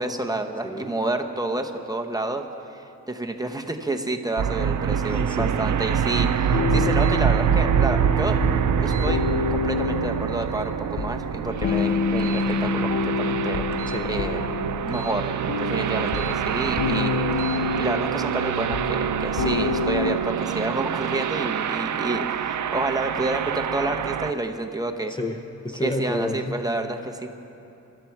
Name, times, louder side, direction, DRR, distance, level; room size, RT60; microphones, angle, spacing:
voice 1, 0.0-2.4 2.7-8.4 8.8-9.2 9.5-13.7 14.1-14.4 14.8-15.3 15.6-25.1 25.8-27.3, right 2 dB, 15° right, 3 dB, 0.8 m, -29 dB
sound 1, 4.4-24.3, right 8 dB, 75° right, 0.5 m, -25 dB
voice 2, 5.1-5.5 13.9-14.1 25.1-26.6, left 1 dB, 15° left, 4 dB, 0.6 m, -30 dB
sound 2, 6.5-20.2, left 5 dB, 75° left, 0.7 m, -28 dB
sound 3, 6.9-7.2 8.9-9.1 10.4-10.7 12.2-12.5 13.7-14.0 14.9-15.2 16.1-16.4 17.3-17.6, right 6 dB, 50° right, 1.1 m, -42 dB
24.0 x 12.5 x 4.6 m, 2.8 s
wide cardioid pair, 145°, 30 cm